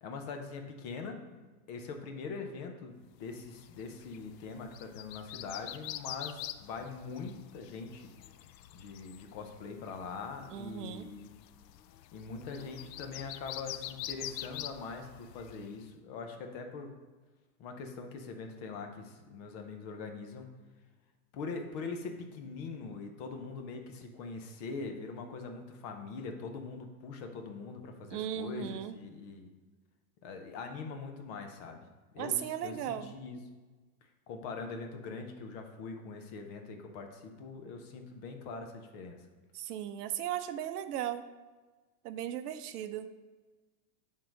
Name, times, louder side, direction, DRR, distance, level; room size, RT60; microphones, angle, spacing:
voice 1, 0.0-1.4 1.7-8.1 8.7-11.3 12.1-16.9 17.6-20.5 21.3-29.5 30.2-31.8 32.1-33.4 34.3-39.2, left 4 dB, 25° left, 4 dB, 0.5 m, -42 dB
sound 1, 3.3-15.8, left 13 dB, 80° left, 0.6 m, -46 dB
voice 2, 10.5-11.1 28.1-28.9 32.2-33.1 39.5-41.3 42.0-43.1, right 10 dB, 70° right, 10 dB, 0.7 m, -36 dB
8.9 x 3.7 x 5.0 m, 1.3 s
supercardioid pair, 155°, 49 cm